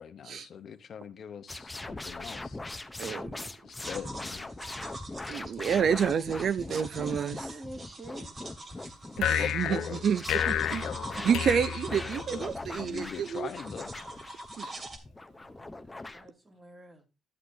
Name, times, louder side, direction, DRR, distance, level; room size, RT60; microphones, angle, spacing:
voice 1, 0.0-2.6 3.6-4.5 9.4-10.1 10.5-11.4 12.3-13.9, left 7 dB, 50° left, 0.9 m, -41 dB
sound 1, 1.5-16.3, left 2 dB, 15° left, 0.6 m, -41 dB
voice 2, 3.0-3.5 5.3-7.4 9.2-10.8 11.2-13.5 14.6-14.7, right 7 dB, 55° right, 0.4 m, -29 dB
sound 2, 3.8-15.0, right 2 dB, 40° right, 2.4 m, -45 dB
voice 3, 6.9-8.3 15.0-17.1, right 1 dB, 20° right, 2.1 m, -46 dB
sound 3, 9.2-12.6, left 10 dB, 80° left, 0.6 m, -31 dB
12.0 x 8.2 x 2.6 m
cardioid pair, 105°, 0 cm